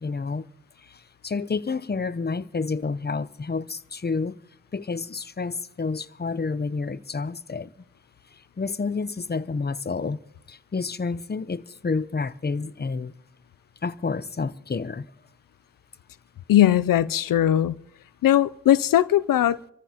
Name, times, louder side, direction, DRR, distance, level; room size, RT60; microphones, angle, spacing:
voice 1, 0.0-0.5 0.8-4.4 4.7-7.7 8.3-10.2 10.5-13.1 13.8-15.1, left 4 dB, 30° left, 0.8 m, -29 dB
voice 2, 16.5-17.7 18.2-19.7, left 12 dB, 85° left, 0.5 m, -19 dB
26.0 x 14.0 x 2.9 m
cardioid pair, 45°, 33 cm